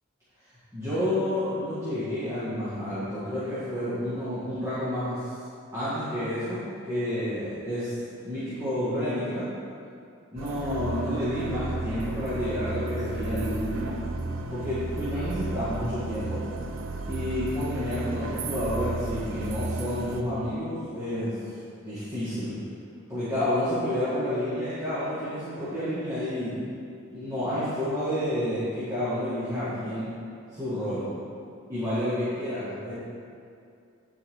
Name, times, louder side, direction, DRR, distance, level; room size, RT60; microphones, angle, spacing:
voice 1, 0.7-5.4 5.7-7.9 8.2-9.5 10.3-14.0 14.5-16.4 17.1-21.4 21.8-22.6 23.1-26.6 27.1-30.1 30.5-31.1 31.7-32.9, left 1 dB, 15° right, -14 dB, 1.7 m, -30 dB
sound 1, 10.4-20.2, right 2 dB, 75° right, 0.5 m, -33 dB
10.5 x 4.7 x 3.6 m, 2.4 s
head